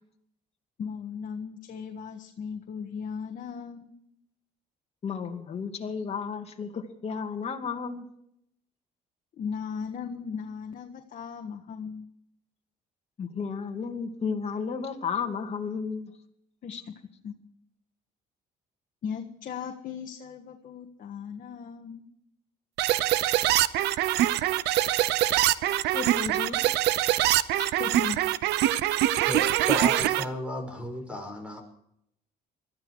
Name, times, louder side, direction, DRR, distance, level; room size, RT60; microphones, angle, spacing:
voice 1, 0.8-3.9 9.4-12.1 16.6-16.8 17.2-17.3 19.0-22.1 27.8-28.2, left 6 dB, 55° left, 4 dB, 1.6 m, -37 dB
voice 2, 5.0-8.1 13.2-16.1 16.7-16.8 25.9-26.6 27.3-27.7, left 5 dB, 40° left, 3 dB, 2.5 m, -33 dB
sound 1, 22.8-30.2, right 14 dB, 80° right, 0.7 m, -24 dB
voice 3, 29.3-31.6, left 1 dB, 5° right, 5 dB, 5.6 m, -33 dB
21.0 x 13.5 x 4.8 m, 0.74 s
cardioid pair, 110°, 17 cm